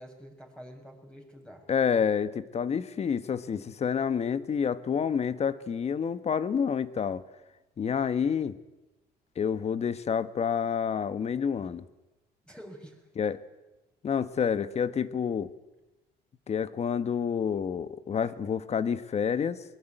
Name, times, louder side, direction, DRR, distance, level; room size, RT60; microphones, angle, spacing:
voice 1, 0.0-1.6 12.4-13.1, equal, 5° left, 2 dB, 6.1 m, -47 dB
voice 2, 1.7-7.2 7.8-8.6 9.4-11.9 13.2-13.4 14.0-15.5 16.5-19.6, left 7 dB, 40° left, 13 dB, 1.4 m, -28 dB
22.0 x 21.5 x 9.2 m, 1.0 s
cardioid pair, 110°, 17 cm